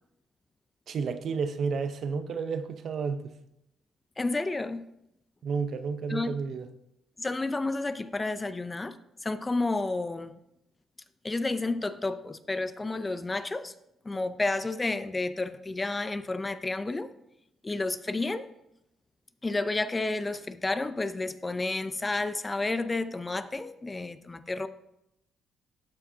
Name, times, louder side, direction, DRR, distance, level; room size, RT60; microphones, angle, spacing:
voice 1, 0.9-3.3 5.4-6.7, right 5 dB, 60° right, 0.6 m, -31 dB
voice 2, 4.2-4.9 6.1-6.3 7.2-9.0 9.2-10.3 11.2-13.7 14.0-17.1 17.6-18.5 19.4-24.7, left 2 dB, 20° left, 0.4 m, -31 dB
12.5 x 4.9 x 2.7 m
cardioid pair, 90°, 0 cm